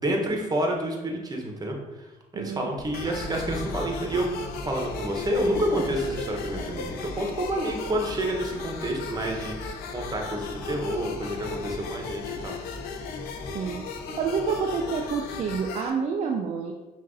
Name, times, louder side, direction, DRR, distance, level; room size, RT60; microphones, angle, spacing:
voice 1, 0.0-2.1 2.3-4.3 4.6-12.6, right 1 dB, 25° right, 1 dB, 1.1 m, -29 dB
voice 2, 2.3-2.7 13.5-13.8 14.2-16.7, right 5 dB, 45° right, 2 dB, 0.5 m, -28 dB
sound 1, 2.8-15.7, left 2 dB, 30° left, 1.0 m, -40 dB
sound 2, 2.9-15.9, left 5 dB, 75° left, 0.5 m, -38 dB
5.7 x 2.6 x 2.7 m, 1.1 s
supercardioid pair, 65°, 16 cm